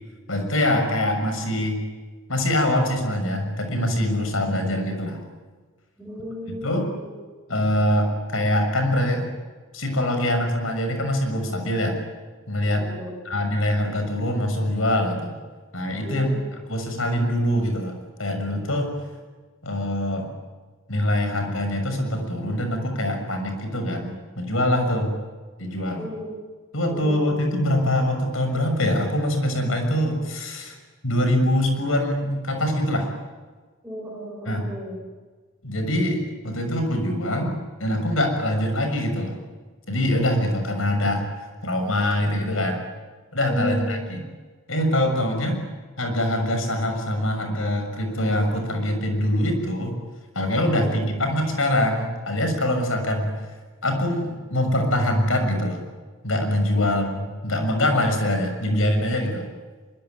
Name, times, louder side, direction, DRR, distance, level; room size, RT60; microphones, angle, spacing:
voice 1, 0.3-1.8 2.3-5.2 6.6-6.9 7.5-9.3 9.7-12.0 12.5-12.8 13.2-15.4 15.7-16.3 16.7-17.9 18.2-18.9 19.6-20.3 20.9-25.1 25.6-26.1 26.7-30.8 31.0-33.1 34.5-34.7 35.6-37.5 37.8-39.4 39.9-41.2 41.6-42.8 43.3-44.2 44.7-45.6 46.0-49.9 50.3-53.3 53.8-55.9 56.2-59.4, left 1 dB, 80° left, 5 dB, 6.7 m, -24 dB
voice 2, 6.0-7.1 12.8-13.1 16.0-16.4 26.0-26.3 26.9-27.3 33.8-35.0 43.5-44.0 50.8-50.9 56.7-56.9, equal, 10° right, -1 dB, 6.5 m, -34 dB
24.5 x 24.0 x 9.6 m, 1.4 s
head